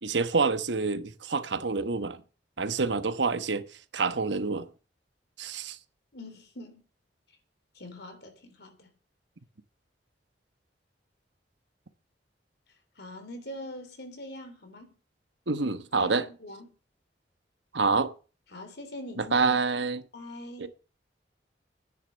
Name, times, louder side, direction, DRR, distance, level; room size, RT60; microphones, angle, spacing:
voice 1, 0.0-2.2 2.6-3.6 3.9-4.7 5.4-5.8 15.5-16.2 17.7-18.1 19.2-20.0 20.6-20.7, right 4 dB, 80° right, 1.2 m, -27 dB
voice 2, 6.1-6.8 7.8-8.9 13.0-15.0 16.0-16.7 18.5-19.5 20.1-20.7, left 1 dB, 65° left, 3.5 m, -43 dB
11.0 x 10.0 x 6.5 m
head